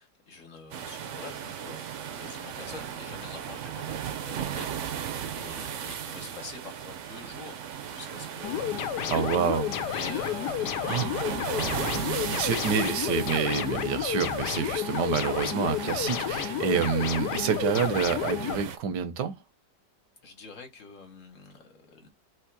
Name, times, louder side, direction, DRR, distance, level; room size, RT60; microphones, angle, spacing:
voice 1, 0.0-1.8 2.2-9.4 9.8-13.0 13.5-13.7 20.2-22.1, left 4 dB, 50° left, 1.4 m, -46 dB
sound 1, 0.7-18.8, right 9 dB, 60° right, 0.8 m, -36 dB
sound 2, 8.4-18.6, left 11 dB, 80° left, 1.2 m, -31 dB
voice 2, 9.1-9.7 10.9-11.1 12.4-19.3, right 7 dB, 85° right, 1.4 m, -28 dB
3.6 x 3.1 x 4.6 m
omnidirectional pair, 1.8 m